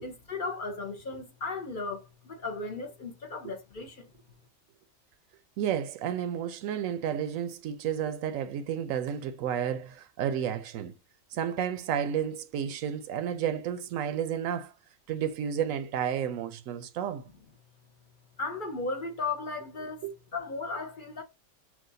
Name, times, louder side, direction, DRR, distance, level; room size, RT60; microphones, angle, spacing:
voice 1, 0.0-4.1 18.4-20.0 20.3-21.2, left 3 dB, 50° left, 0.8 m, -36 dB
voice 2, 5.6-10.9 11.3-14.7 15.1-17.2 20.0-20.1, right 9 dB, 85° right, 1.0 m, -31 dB
6.0 x 2.4 x 2.7 m
omnidirectional pair, 1.4 m